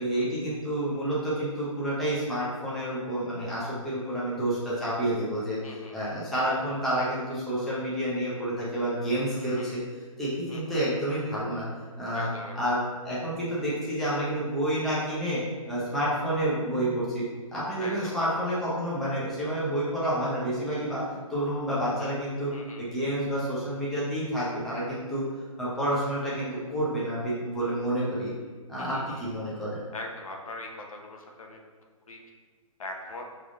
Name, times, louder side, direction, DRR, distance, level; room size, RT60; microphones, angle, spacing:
voice 1, 0.0-5.6 5.9-9.8 10.2-11.7 12.0-12.3 12.6-17.3 17.5-21.0 21.3-22.5 22.8-25.3 25.6-28.3 28.7-29.8, right 1 dB, ahead, -9 dB, 0.5 m, -29 dB
voice 2, 5.6-6.2 9.3-9.8 10.5-10.8 12.1-12.6 17.8-18.2 22.5-22.8 28.8-29.2 29.9-31.6 32.1-32.2 32.8-33.2, left 2 dB, 75° left, 1 dB, 0.9 m, -41 dB
5.9 x 3.5 x 2.5 m, 1.5 s
hypercardioid pair, 155°, 18 cm